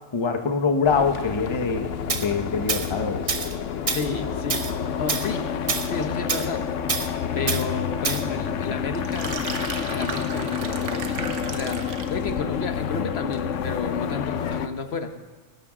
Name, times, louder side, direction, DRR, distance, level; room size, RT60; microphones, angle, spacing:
voice 1, 0.1-3.2, left 5 dB, 25° left, 6 dB, 0.8 m, -24 dB
sound 1, 0.8-14.7, left 8 dB, 85° left, 1.0 m, -29 dB
Tools, 2.1-2.3 2.7-2.9 3.3-3.5 3.9-4.1 4.5-4.7 5.1-5.3 5.7-5.9 6.3-6.5 6.9-7.1 7.5-7.6 8.0-8.2, right 5 dB, 35° right, 0.7 m, -26 dB
voice 2, 3.9-4.6 5.0-5.4 5.8-6.6 7.3-9.4 9.9-15.1, left 4 dB, 60° left, 7 dB, 1.1 m, -31 dB
sound 2, 8.9-12.2, right 5 dB, 85° right, 1.4 m, -35 dB
21.0 x 12.0 x 3.7 m, 1.3 s
omnidirectional pair, 1.2 m